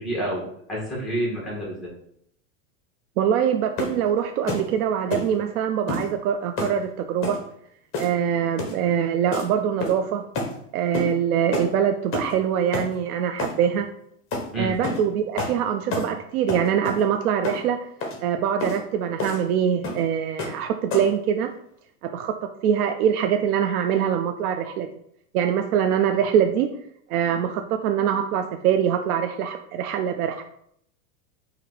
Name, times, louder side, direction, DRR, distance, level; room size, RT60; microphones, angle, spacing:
voice 1, 0.0-1.9 14.5-14.7, right 1 dB, ahead, -5 dB, 1.6 m, -28 dB
voice 2, 3.2-7.4 8.0-10.2 10.7-13.9 14.6-17.8 18.2-21.5 22.0-22.3 22.6-24.9 25.3-26.7 27.1-30.5, right 8 dB, 85° right, 6 dB, 0.6 m, -23 dB
sound 1, 3.8-4.0 4.5-4.7 5.1-5.3 5.9-6.1 6.6-6.8 7.2-7.4 7.9-8.2 8.6-8.8 9.3-9.5 9.8-10.1 10.3-10.5 10.9-11.1 11.5-11.7 12.1-12.3 12.7-12.9 13.4-13.6 14.3-14.5 14.8-15.0 15.4-15.6 15.9-16.1 16.5-17.0 17.4-17.6 18.0-18.2 18.6-18.8 19.2-19.4 19.8-20.0 20.4-20.6 20.9-21.2, left 2 dB, 30° left, 1.1 m, -29 dB
4.3 x 2.8 x 4.0 m, 0.70 s
supercardioid pair, 135°, 44 cm